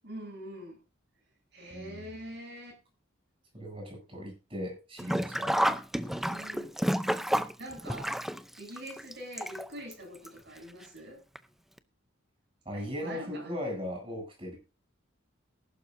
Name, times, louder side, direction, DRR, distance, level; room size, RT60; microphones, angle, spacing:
voice 1, 0.0-0.8 1.5-2.8 5.9-6.7 7.6-8.2 8.6-11.2 12.7-13.5, right 1 dB, 55° right, 8.0 m, -44 dB
voice 2, 1.7-2.3 3.5-5.5 12.6-14.6, left 1 dB, 25° right, 7.9 m, -38 dB
Sink (filling or washing), 5.0-9.9 10.2-10.3 11.4-11.5 11.8-11.9, equal, ahead, 0.6 m, -30 dB
19.0 x 11.5 x 2.7 m
head